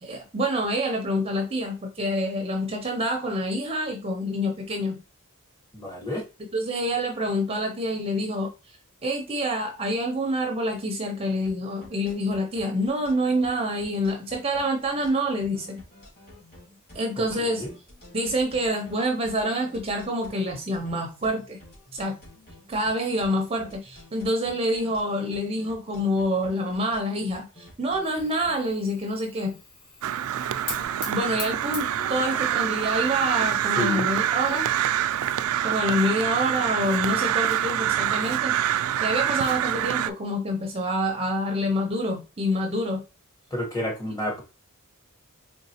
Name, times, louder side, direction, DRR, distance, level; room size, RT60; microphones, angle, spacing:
voice 1, 0.0-5.0 6.5-8.8 9.0-15.8 16.9-17.7 18.1-21.6 21.9-22.2 22.7-29.6 31.1-34.7 35.6-38.6 39.0-43.0, equal, 25° right, 0.5 m, -27 dB
voice 2, 5.7-6.2 17.4-17.7 32.0-32.2 33.8-34.1 43.5-44.4, left 1 dB, 15° left, 1.1 m, -30 dB
sound 1, 11.3-28.7, left 1 dB, 45° left, 2.3 m, -50 dB
Fire, 28.0-35.5, left 2 dB, 80° left, 1.7 m, -43 dB
Crow, 30.0-40.1, right 11 dB, 75° right, 0.3 m, -26 dB
3.9 x 3.5 x 2.8 m
head